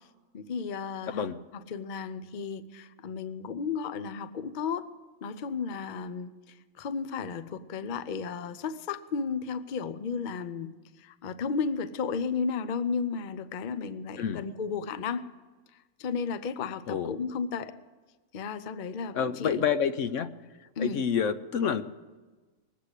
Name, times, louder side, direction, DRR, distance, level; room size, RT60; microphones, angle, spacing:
voice 1, 0.3-1.3 1.5-4.9 5.2-6.3 6.8-10.7 11.0-15.2 16.0-17.7 18.3-19.6 20.8-21.0, left 5 dB, 50° left, 12 dB, 0.6 m, -33 dB
voice 2, 1.1-1.4 14.2-14.5 16.9-17.1 19.1-20.3 20.8-21.8, left 7 dB, 70° left, 11 dB, 1.0 m, -28 dB
20.5 x 8.4 x 8.2 m, 1.3 s
omnidirectional pair, 1.4 m